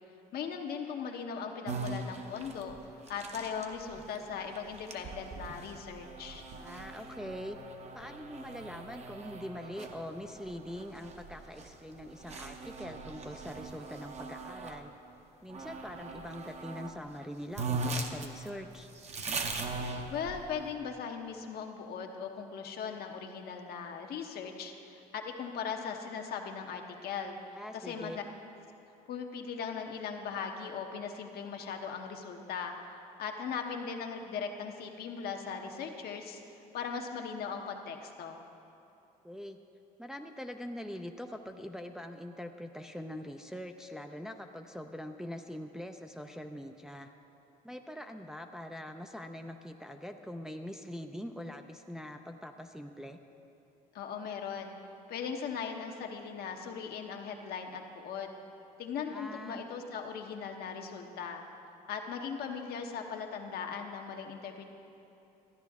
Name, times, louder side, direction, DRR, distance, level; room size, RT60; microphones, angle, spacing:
voice 1, 0.3-2.8 3.1-6.4 20.1-27.4 27.7-28.2 29.1-32.7 33.2-36.4 36.7-38.4 53.9-54.7 55.1-58.3 58.8-61.4 61.9-64.7, left 6 dB, 65° left, 3 dB, 1.0 m, -39 dB
sound 1, 1.7-14.8 15.5-16.9 17.2-17.3 17.5-20.7, right 3 dB, 40° right, 0.9 m, -40 dB
voice 2, 6.6-7.6 7.9-14.9 15.4-18.9 27.5-28.2 39.2-39.6 40.0-47.1 47.6-53.2 59.1-59.7, equal, 5° right, 4 dB, 0.4 m, -43 dB
13.5 x 10.0 x 3.6 m, 2.8 s
cardioid pair, 110°, 17 cm